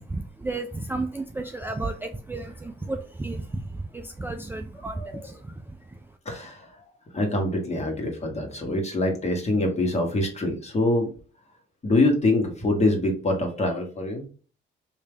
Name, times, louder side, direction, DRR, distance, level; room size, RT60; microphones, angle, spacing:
voice 1, 0.0-6.0, right 2 dB, 10° right, 4 dB, 0.3 m, -33 dB
voice 2, 4.9-5.3 6.2-6.8 7.1-11.1 11.8-14.3, left 2 dB, 35° left, 3 dB, 1.4 m, -25 dB
3.4 x 2.8 x 3.3 m, 0.39 s
cardioid pair, 90°, 20 cm